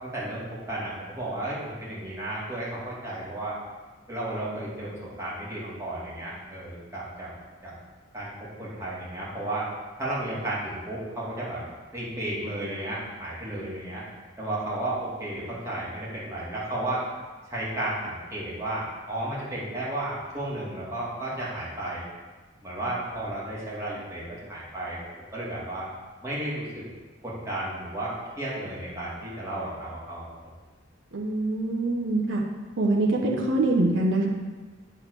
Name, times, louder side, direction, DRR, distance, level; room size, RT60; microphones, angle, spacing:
voice 1, 0.0-3.5 4.1-7.3 7.6-7.7 8.1-9.7 10.0-11.6 11.9-14.0 14.4-17.0 17.5-22.0 22.6-25.0 25.3-25.9 26.2-26.8 27.2-30.2, right 1 dB, 15° right, -8 dB, 2.5 m, -33 dB
voice 2, 31.1-32.4 32.8-34.3, right 2 dB, 65° right, -1 dB, 1.0 m, -24 dB
8.8 x 4.1 x 6.7 m, 1.3 s
head